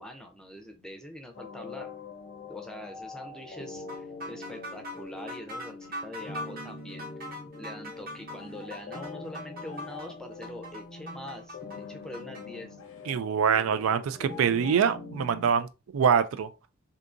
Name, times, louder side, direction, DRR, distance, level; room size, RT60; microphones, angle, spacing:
voice 1, 0.0-1.9 2.5-7.1 7.6-11.6 11.9-12.7, left 1 dB, 5° left, 0.6 m, -43 dB
sound 1, 1.3-15.6, left 3 dB, 45° left, 0.5 m, -43 dB
sound 2, 3.9-12.4, equal, 45° right, 0.9 m, -41 dB
sound 3, 8.3-8.9 9.7-10.2 12.8-13.2 14.2-15.0, left 6 dB, 85° left, 0.7 m, -48 dB
voice 2, 13.1-15.7 15.9-16.5, right 7 dB, 85° right, 0.4 m, -24 dB
3.6 x 2.8 x 2.5 m
head